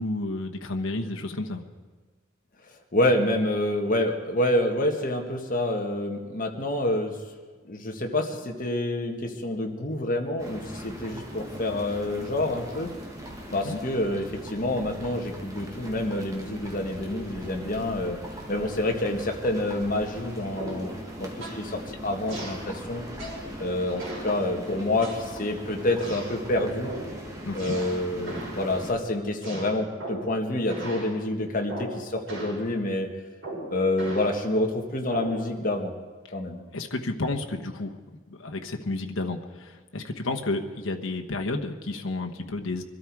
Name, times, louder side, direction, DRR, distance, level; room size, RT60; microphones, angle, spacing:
voice 1, 0.0-1.6 13.5-13.8 27.4-27.8 36.7-37.9 38.3-42.8, left 2 dB, 90° left, 3 dB, 1.1 m, -31 dB
voice 2, 2.9-7.2 7.6-12.9 13.5-18.2 18.5-23.0 23.6-26.9 27.5-33.1 33.7-35.9 36.3-36.6, left 1 dB, 45° left, 3 dB, 1.7 m, -27 dB
sound 1, 10.4-29.0, equal, 15° right, 1.9 m, -40 dB
sound 2, 20.6-20.9 21.4-21.7 22.3-22.6 23.2-23.5 24.0-24.3 25.0-25.5 26.0-26.4 26.8-27.1 27.5-28.0 28.3-28.6 29.4-30.3 30.7-31.1 31.7-32.0 32.3-32.6 33.4-34.3 35.1-35.4, right 1 dB, 70° right, 6.1 m, -37 dB
23.0 x 12.5 x 4.7 m, 1.4 s
head